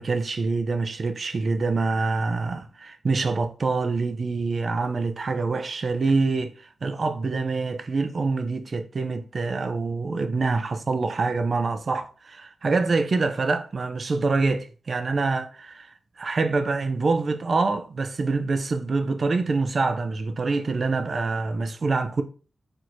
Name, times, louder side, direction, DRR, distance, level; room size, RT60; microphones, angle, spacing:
voice 1, 0.0-15.9 16.2-22.2, right 3 dB, 40° right, 0.4 m, -25 dB
4.4 x 2.6 x 4.4 m
wide cardioid pair, 170°, 0 cm